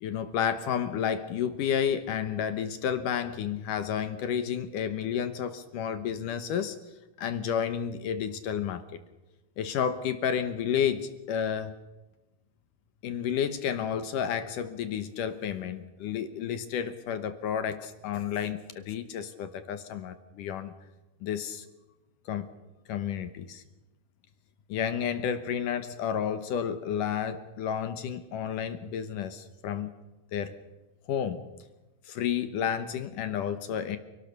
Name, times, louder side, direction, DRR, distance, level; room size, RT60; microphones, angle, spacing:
voice 1, 0.0-6.8 7.2-9.0 9.6-11.7 13.0-20.7 21.2-21.7 22.3-22.5 22.9-23.6 24.7-29.9 30.3-30.5 31.1-31.5 32.1-34.0, left 8 dB, 70° left, 10 dB, 2.3 m, -31 dB
29.5 x 18.0 x 6.8 m, 1.1 s
omnidirectional pair, 4.6 m